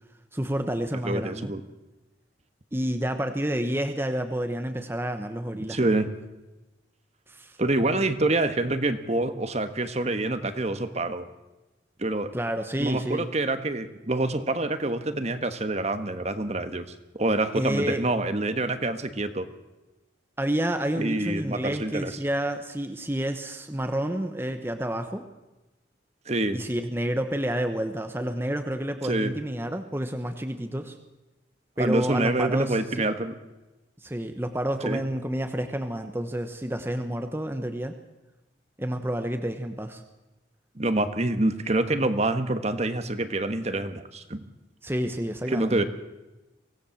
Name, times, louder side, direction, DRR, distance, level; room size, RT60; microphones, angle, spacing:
voice 1, 0.3-1.5 2.7-6.1 7.3-7.6 12.3-13.3 17.5-18.0 20.4-25.3 26.5-31.0 31.8-33.1 34.0-38.0 38.8-40.0 44.8-45.8, right 1 dB, 10° right, 7 dB, 1.1 m, -29 dB
voice 2, 1.0-1.6 5.5-6.1 7.6-11.2 12.0-12.3 12.8-16.8 17.2-19.5 21.0-22.1 26.3-26.6 29.0-29.3 31.8-33.3 34.8-35.0 40.8-44.4 45.5-45.8, right 2 dB, 35° right, 9 dB, 1.5 m, -26 dB
24.5 x 17.5 x 7.2 m, 1.1 s
head